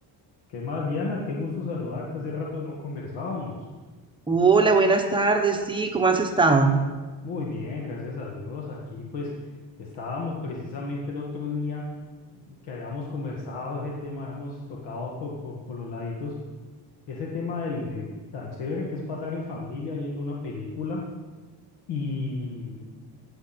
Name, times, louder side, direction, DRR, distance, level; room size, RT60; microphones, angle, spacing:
voice 1, 0.5-3.6 7.2-9.3 9.8-11.8 12.3-16.3 17.1-21.0 21.9-23.2, left 3 dB, 70° left, -3 dB, 2.1 m, -33 dB
voice 2, 4.3-6.7, right 4 dB, 10° right, 3 dB, 0.9 m, -20 dB
17.5 x 6.1 x 6.1 m, 1.3 s
cardioid pair, 175°, 42 cm